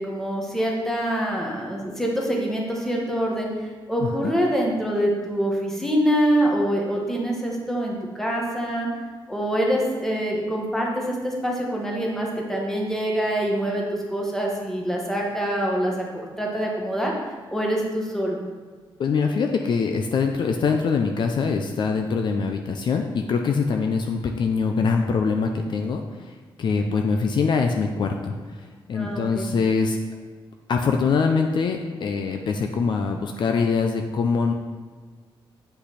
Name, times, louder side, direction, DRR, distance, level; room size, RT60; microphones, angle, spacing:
voice 1, 0.0-3.5 3.9-8.9 9.3-17.1 17.5-18.4 28.9-29.5, equal, 5° left, -2 dB, 1.5 m, -25 dB
voice 2, 19.0-26.3 26.6-30.0 30.7-34.5, left 5 dB, 55° left, 4 dB, 0.6 m, -23 dB
8.3 x 5.6 x 4.2 m, 1.5 s
cardioid pair, 130°, 9 cm